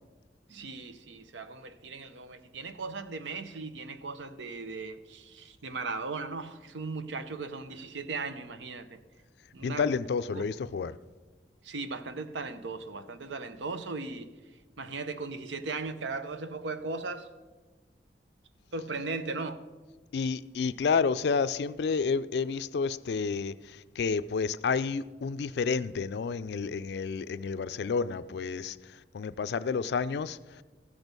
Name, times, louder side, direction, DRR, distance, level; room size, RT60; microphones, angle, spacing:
voice 1, 0.5-9.0 9.5-9.9 10.3-10.5 11.6-14.3 14.8-17.3 18.7-19.6, right 3 dB, 90° right, 0.7 m, -37 dB
voice 2, 9.6-11.0 20.1-28.8 29.1-30.6, left 5 dB, 65° left, 0.3 m, -30 dB
14.5 x 6.3 x 5.2 m
head